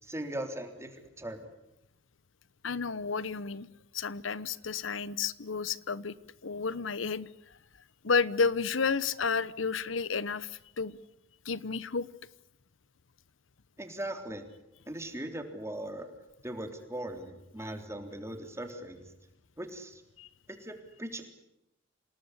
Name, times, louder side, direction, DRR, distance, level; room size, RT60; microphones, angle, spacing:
voice 1, 0.0-1.5 13.8-14.4 14.9-16.1 16.4-19.0 19.6-20.0 20.5-21.3, right 1 dB, 15° right, 5 dB, 3.6 m, -39 dB
voice 2, 2.6-3.7 3.9-6.1 6.4-7.3 8.0-11.0 11.4-12.1 20.2-20.3, left 5 dB, 85° left, 19 dB, 1.0 m, -31 dB
27.0 x 19.0 x 9.9 m, 0.87 s
head